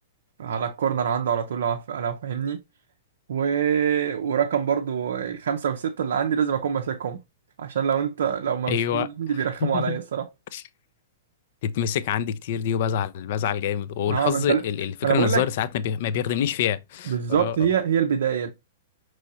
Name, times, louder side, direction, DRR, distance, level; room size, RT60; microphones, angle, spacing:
voice 1, 0.4-2.6 3.3-7.2 7.6-10.3 14.1-14.6 15.0-15.4 17.1-18.5, right 8 dB, 70° right, 0.5 m, -25 dB
voice 2, 8.7-9.1 9.6-10.0 10.5-10.6 11.6-17.6, left 9 dB, 55° left, 0.4 m, -26 dB
5.4 x 3.1 x 2.7 m
hypercardioid pair, 110°, 0 cm